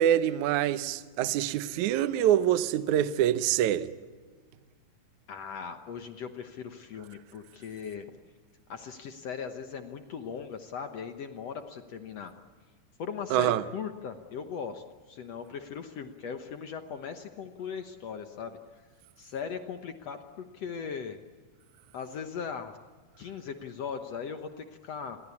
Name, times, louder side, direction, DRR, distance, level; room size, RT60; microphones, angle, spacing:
voice 1, 0.0-3.9 13.3-13.6, right 11 dB, 75° right, 1.8 m, -25 dB
voice 2, 5.3-8.1 8.7-12.3 13.0-18.6 19.2-21.2 21.9-22.8 23.2-25.2, left 6 dB, 65° left, 1.6 m, -39 dB
28.0 x 22.5 x 8.5 m
omnidirectional pair, 4.5 m